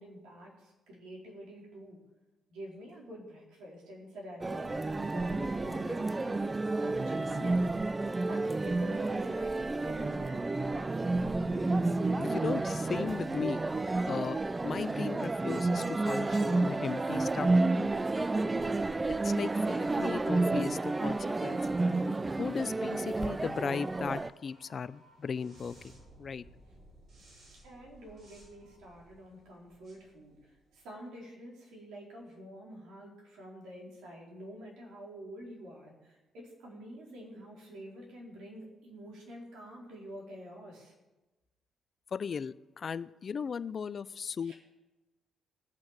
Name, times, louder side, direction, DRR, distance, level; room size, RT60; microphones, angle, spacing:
voice 1, 0.0-2.0 2.5-11.2 27.6-40.9 44.4-44.5, equal, 85° right, -2 dB, 4.1 m, -48 dB
sound 1, 4.4-24.3, right 2 dB, 20° right, 0.4 m, -30 dB
voice 2, 12.2-13.6 14.1-14.4 14.6-17.6 18.3-18.7 19.2-21.6 22.4-25.9 26.2-26.5 42.1-44.5, left 6 dB, 45° left, 17 dB, 0.4 m, -36 dB
sound 2, 18.6-30.9, right 1 dB, 55° right, 5.7 m, -60 dB
17.0 x 6.2 x 7.3 m, 1.1 s
cardioid pair, 90°, 0 cm